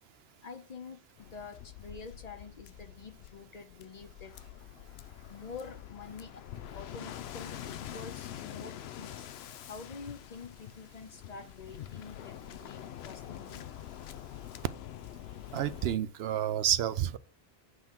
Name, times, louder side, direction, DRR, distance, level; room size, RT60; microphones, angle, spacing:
voice 1, 0.4-4.4 5.3-6.5 6.7-9.3 9.7-13.6, left 4 dB, 50° left, 0.6 m, -47 dB
Waves surf, 1.2-16.0, left 11 dB, 85° left, 0.8 m, -45 dB
voice 2, 15.5-17.2, right 11 dB, 80° right, 0.8 m, -29 dB
7.9 x 3.6 x 5.8 m
omnidirectional pair, 1.0 m